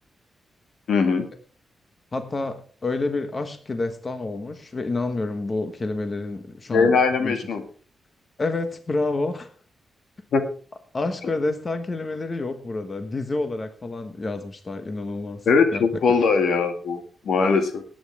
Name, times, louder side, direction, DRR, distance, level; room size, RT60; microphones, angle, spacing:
voice 1, 0.9-1.3 6.7-7.6 10.3-10.4 15.5-17.8, left 4 dB, 80° left, 6 dB, 2.1 m, -20 dB
voice 2, 2.1-6.9 7.2-7.3 8.4-9.5 10.9-15.4 15.7-15.8, left 2 dB, 30° left, 8 dB, 1.2 m, -28 dB
19.0 x 9.0 x 3.5 m, 0.40 s
wide cardioid pair, 115°, 0 cm